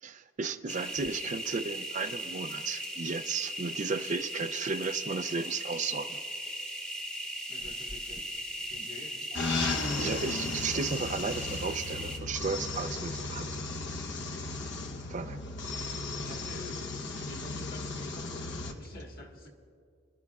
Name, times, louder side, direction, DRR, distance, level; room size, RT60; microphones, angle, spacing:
voice 1, 0.0-6.2 9.3-9.5 10.0-13.5 15.1-15.4, right 4 dB, 40° right, 10 dB, 0.4 m, -34 dB
sound 1, 0.7-12.2, right 1 dB, 5° left, 0.8 m, -38 dB
voice 2, 7.5-8.3 8.7-9.3 14.9-15.2 16.2-19.5, left 2 dB, 50° left, 0 dB, 1.6 m, -48 dB
sound 2, 9.3-18.7, left 3 dB, 65° left, 1.0 m, -35 dB
29.5 x 12.0 x 2.4 m, 2.3 s
head